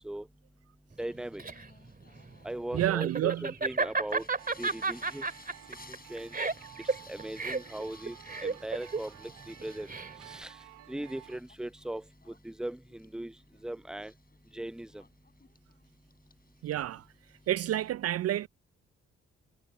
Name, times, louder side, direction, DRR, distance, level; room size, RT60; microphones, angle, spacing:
Singing, 1.0-17.9, left 3 dB, 30° left, 7.7 m, -58 dB
voice 1, 1.0-1.4 2.4-4.2 4.6-5.2 6.1-6.3 7.1-8.2 8.4-9.9 10.2-10.5 10.9-13.3 13.6-14.1 14.5-15.0, right 1 dB, ahead, 0.7 m, -39 dB
Laughter, 1.0-10.4, right 4 dB, 30° right, 2.4 m, -33 dB
voice 2, 2.7-3.4 16.6-17.0 17.5-18.5, right 13 dB, 55° right, 0.4 m, -29 dB
sound 1, 4.3-11.4, right 13 dB, 80° right, 3.4 m, -53 dB
hypercardioid pair, 45°, 30 cm